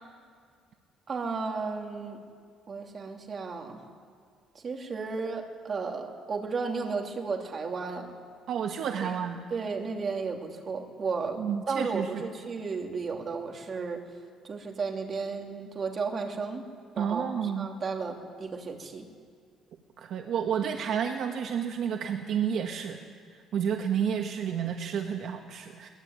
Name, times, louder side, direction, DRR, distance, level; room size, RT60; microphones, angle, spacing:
voice 1, 1.1-2.2 2.7-3.8 4.6-8.1 9.0-9.2 9.5-11.4 11.7-14.0 14.4-16.6 17.0-19.1, right 4 dB, 35° right, 2 dB, 2.9 m, -33 dB
voice 2, 8.5-9.4 11.4-12.2 17.0-17.7 20.0-23.0 23.5-25.9, right 8 dB, 55° right, 4 dB, 1.4 m, -30 dB
22.0 x 20.5 x 9.6 m, 2.1 s
cardioid pair, 140°, 0 cm